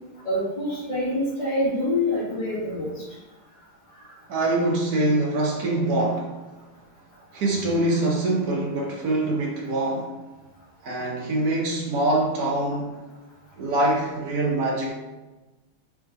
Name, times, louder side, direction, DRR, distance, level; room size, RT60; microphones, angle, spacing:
voice 1, 0.2-2.9, left 1 dB, 30° left, -10 dB, 1.0 m, -26 dB
voice 2, 4.3-6.4 7.3-10.2 10.8-13.1 13.6-14.9, right 2 dB, 60° right, -1 dB, 1.0 m, -24 dB
3.7 x 3.5 x 3.8 m, 1.1 s
omnidirectional pair, 2.3 m